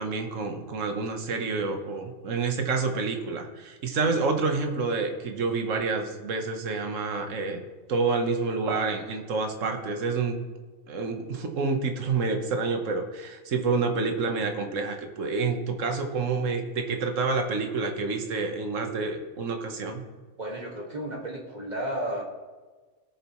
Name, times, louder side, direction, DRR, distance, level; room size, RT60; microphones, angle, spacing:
voice 1, 0.0-7.6 7.9-10.4 10.9-20.0, right 4 dB, 70° right, 5 dB, 1.5 m, -28 dB
voice 2, 20.4-22.2, right 1 dB, 30° right, -2 dB, 1.9 m, -33 dB
19.0 x 6.9 x 3.1 m, 1.3 s
omnidirectional pair, 1.4 m